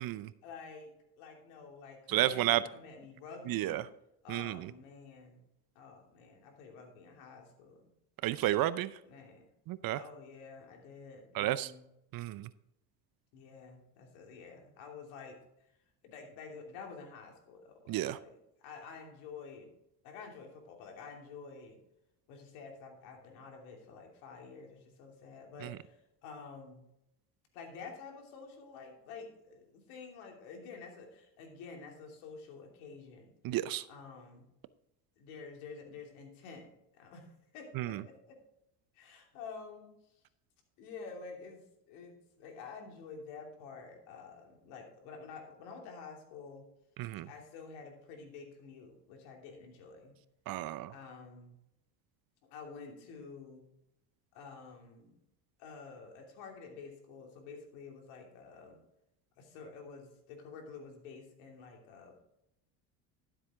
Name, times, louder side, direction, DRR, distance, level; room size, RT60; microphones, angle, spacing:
voice 1, 0.4-3.8 4.2-5.4 5.7-7.9 9.1-9.5 9.9-11.8 13.3-15.4 16.0-19.7 20.0-21.8 22.3-26.8 27.5-33.3 33.9-34.5 35.2-37.3 37.5-38.4 38.9-39.9 40.8-46.6 47.2-50.1 50.9-51.6 52.4-53.6 54.3-55.1 55.6-58.8 59.4-62.2, left 5 dB, 75° left, 2 dB, 3.0 m, -49 dB
voice 2, 2.1-2.6 3.5-3.8 4.3-4.7 8.2-8.9 9.7-10.0 11.3-11.7 12.1-12.5 17.9-18.2 25.6-25.7 33.4-33.8 37.8-38.0 47.0-47.3 50.5-50.9, right 14 dB, 45° right, 16 dB, 0.6 m, -32 dB
12.5 x 7.7 x 3.7 m, 0.82 s
supercardioid pair, 85°, 49 cm